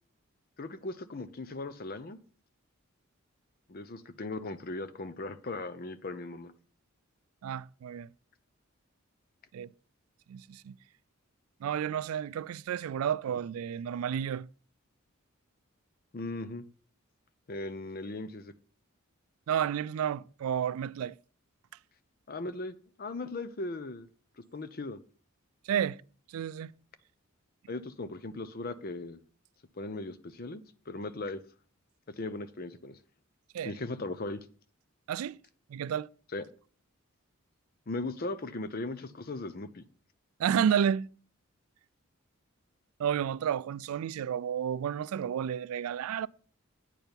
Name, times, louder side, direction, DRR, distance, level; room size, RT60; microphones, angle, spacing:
voice 1, 0.6-2.2 3.7-6.5 16.1-16.6 17.5-18.5 22.3-24.1 24.5-25.0 27.7-29.2 29.8-31.4 32.1-33.0 33.6-34.4 36.3-36.4 37.9-39.8, left 2 dB, 45° left, 0.6 m, -38 dB
voice 2, 7.4-8.1 9.5-9.7 10.3-10.8 11.6-14.5 19.5-21.1 25.7-26.0 26.3-26.7 33.5-33.7 35.1-35.4 35.7-36.1 40.4-41.1 43.0-46.3, right 8 dB, 90° right, 0.3 m, -31 dB
9.1 x 4.5 x 5.2 m
head